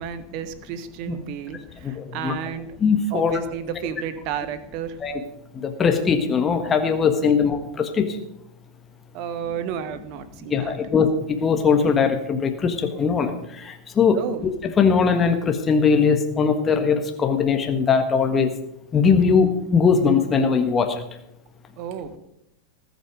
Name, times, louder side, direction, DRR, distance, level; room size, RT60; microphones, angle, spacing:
voice 1, 0.0-2.8 3.1-5.0 7.2-7.3 9.1-10.8 14.1-14.5 21.8-22.2, right 8 dB, 45° right, 12 dB, 1.3 m, -32 dB
voice 2, 1.8-2.3 2.8-3.3 5.0-5.2 5.5-8.1 10.5-14.2 14.8-18.5 18.9-21.0, left 5 dB, 20° left, 6 dB, 1.6 m, -20 dB
19.0 x 8.3 x 5.2 m, 0.79 s
figure-of-eight pair, 90°, 0 cm